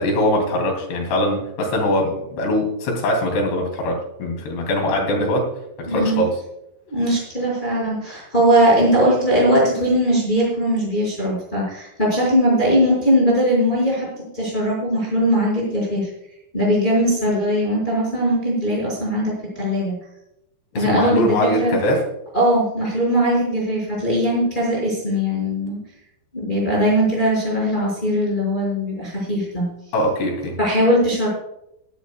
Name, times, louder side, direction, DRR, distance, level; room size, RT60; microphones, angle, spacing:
voice 1, 0.0-5.5 5.8-6.3 20.7-22.0 29.9-30.6, left 1 dB, 75° left, 1 dB, 4.9 m, -22 dB
voice 2, 5.9-6.2 6.9-14.1 14.3-16.1 16.5-20.0 20.7-21.8 22.3-25.8 26.3-29.7 30.6-31.3, equal, 10° left, -5 dB, 5.4 m, -20 dB
22.5 x 11.5 x 2.3 m, 0.81 s
omnidirectional pair, 4.9 m